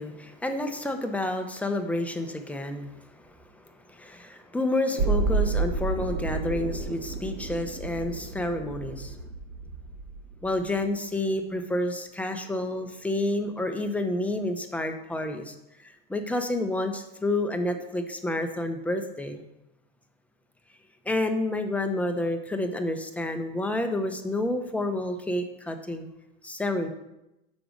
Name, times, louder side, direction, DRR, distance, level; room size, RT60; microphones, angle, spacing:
voice 1, 0.0-3.3 3.9-9.2 10.4-15.5 15.8-19.4 21.1-26.1 26.4-26.9, left 1 dB, 5° left, 5 dB, 0.7 m, -29 dB
sound 1, 5.0-10.9 11.3-11.4, right 4 dB, 55° right, 1.1 m, -30 dB
6.7 x 5.2 x 6.2 m, 0.92 s
supercardioid pair, 120°, 31 cm